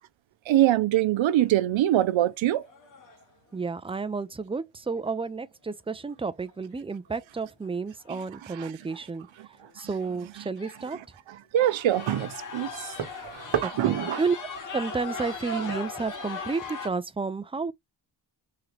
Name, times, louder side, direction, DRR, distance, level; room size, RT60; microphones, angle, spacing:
voice 1, 0.5-2.6 8.6-8.7 11.5-12.7 13.6-14.2, right 13 dB, 85° right, 0.6 m, -23 dB
sound 1, 1.3-1.7 2.2-2.3 2.7-3.2 6.4-6.5 7.6-7.7 8.0-8.3 8.8-8.9 9.6-9.7 10.0-10.1 10.6-11.0 11.6-16.9, left 3 dB, 45° left, 0.9 m, -38 dB
voice 2, 3.5-9.3 9.8-11.0 13.6-14.4 14.7-17.7, right 4 dB, 15° right, 0.3 m, -31 dB
sound 2, 11.9-16.9, right 8 dB, 65° right, 0.9 m, -38 dB
3.7 x 2.9 x 3.2 m
wide cardioid pair, 160°, 45 cm